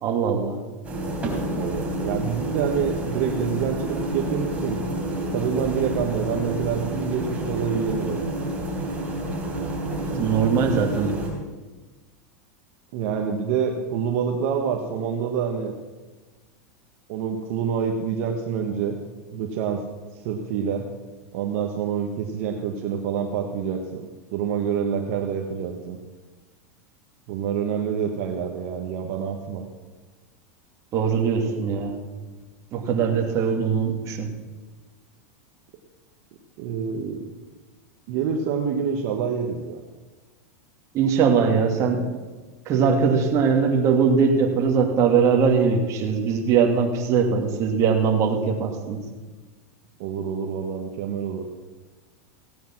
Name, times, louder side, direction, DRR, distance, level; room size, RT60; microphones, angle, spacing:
voice 1, 0.0-0.6 10.0-11.2 30.9-32.0 32.7-34.3 40.9-42.1 42.7-49.0, right 6 dB, 40° right, 3 dB, 2.4 m, -21 dB
sound 1, 0.8-11.3, right 1 dB, 15° right, 3.9 m, -29 dB
voice 2, 1.6-4.8 5.3-8.2 12.9-15.7 17.1-19.0 19.3-19.8 20.2-20.9 21.3-24.0 24.3-26.0 27.3-29.6 31.4-31.5 36.6-37.3 38.1-39.8 50.0-51.5, right 7 dB, 60° right, 3 dB, 1.5 m, -27 dB
16.5 x 9.2 x 6.1 m, 1.3 s
supercardioid pair, 130°, 8 cm